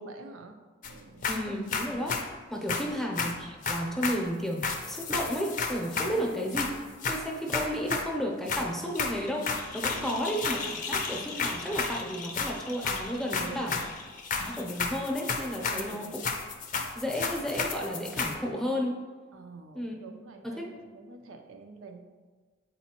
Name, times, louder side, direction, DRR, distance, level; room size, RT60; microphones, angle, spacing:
voice 1, 0.0-0.6 0.8-1.3 2.7-2.9 6.0-6.4 9.7-10.3 13.4-14.0 15.6-16.1 19.3-22.0, right 2 dB, 90° right, 4 dB, 0.6 m, -46 dB
sound 1, 0.8-1.0 1.2-2.2 2.7-4.2 4.6-6.2 6.5-8.1 8.5-8.7 9.0-18.4, left 4 dB, 40° left, 0.5 m, -32 dB
voice 2, 1.3-2.2 2.5-6.6 7.1-13.7 14.4-16.2 16.9-19.0 19.7-19.9 20.4-20.7, equal, ahead, -1 dB, 0.7 m, -32 dB
8.1 x 4.1 x 2.9 m, 1.4 s
head